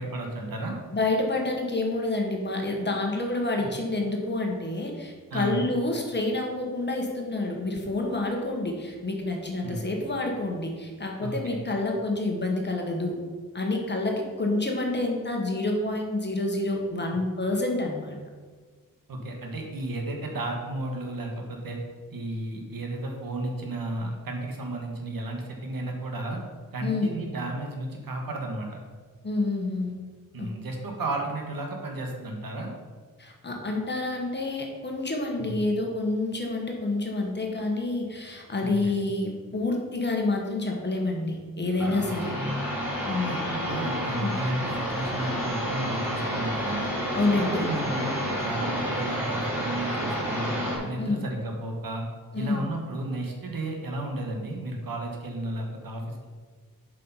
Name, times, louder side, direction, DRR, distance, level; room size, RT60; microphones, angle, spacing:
voice 1, 0.0-0.7 3.6-3.7 5.3-5.6 9.6-9.8 11.2-11.6 19.1-21.8 22.1-26.4 26.7-28.8 30.3-32.7 35.4-35.6 38.6-39.1 42.0-42.1 42.3-42.6 43.2-46.9 47.3-50.6 50.8-52.0 52.3-56.3, right 2 dB, 80° right, 1 dB, 1.6 m, -33 dB
voice 2, 0.9-13.2 13.5-18.2 26.8-27.1 29.2-29.9 30.4-30.5 33.2-42.4 43.1-43.4 44.2-44.3 47.1-47.7 51.0-51.2 52.3-52.6, left 2 dB, 30° left, 1 dB, 1.3 m, -28 dB
sound 1, 41.7-50.8, equal, 5° right, 2.5 m, -30 dB
7.6 x 5.4 x 5.6 m, 1.5 s
wide cardioid pair, 155°, 34 cm